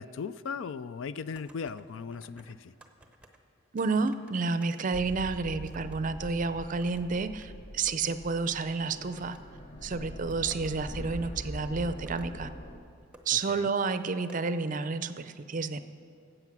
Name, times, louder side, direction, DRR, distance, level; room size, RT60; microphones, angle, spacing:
voice 1, 0.0-2.7 13.3-13.7, left 5 dB, 70° left, 15 dB, 0.4 m, -38 dB
sound 1, 1.3-1.8 2.1-3.4 3.8-6.0 6.3-7.1 7.4-7.5 7.8-8.1 8.4-8.5 9.2-9.4 9.9-10.7 11.6-11.7 12.0-12.3 12.8-12.9 13.1-13.4 13.6-13.7 14.3-14.4, right 1 dB, 5° right, 0.7 m, -55 dB
voice 2, 3.7-9.4 9.8-12.5 13.3-15.8, right 4 dB, 40° right, 12 dB, 0.5 m, -30 dB
sound 2, 4.9-12.8, equal, 40° left, 0.8 m, -43 dB
15.5 x 8.0 x 6.1 m, 2.5 s
head